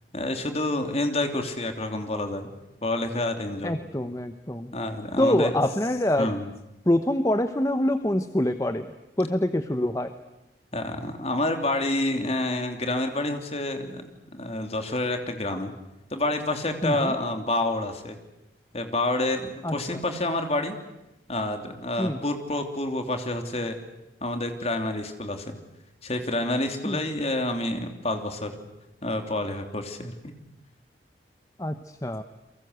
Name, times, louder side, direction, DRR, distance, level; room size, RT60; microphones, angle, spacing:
voice 1, 0.1-2.5 2.8-3.8 4.7-5.6 6.2-6.5 10.7-15.7 16.1-18.2 18.7-20.7 21.3-23.8 24.2-25.5 26.0-28.6 29.0-30.3, left 2 dB, 35° left, 6 dB, 3.1 m, -28 dB
voice 2, 3.6-4.7 5.2-6.3 6.9-8.9 9.2-10.1 16.8-16.9 19.6-19.7 22.0-22.2 26.9-27.0 31.6-31.7 32.0-32.2, left 1 dB, 20° left, 9 dB, 0.9 m, -25 dB
30.0 x 23.0 x 8.1 m, 0.94 s
head